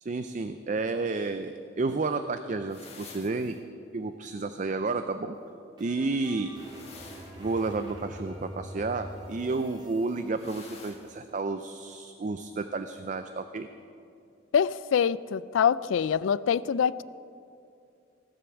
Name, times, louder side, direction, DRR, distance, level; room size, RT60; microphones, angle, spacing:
voice 1, 0.0-3.6 3.9-5.4 5.8-6.6 7.4-13.7, right 3 dB, 40° right, 9 dB, 0.4 m, -31 dB
sound 1, 2.7-3.6 6.5-7.8 10.3-11.2, left 4 dB, 30° left, 1.6 m, -49 dB
sound 2, 5.3-10.3, equal, 25° right, 2.5 m, -45 dB
voice 2, 14.5-17.0, left 7 dB, 85° left, 19 dB, 0.3 m, -25 dB
17.5 x 7.8 x 7.1 m, 2.5 s
head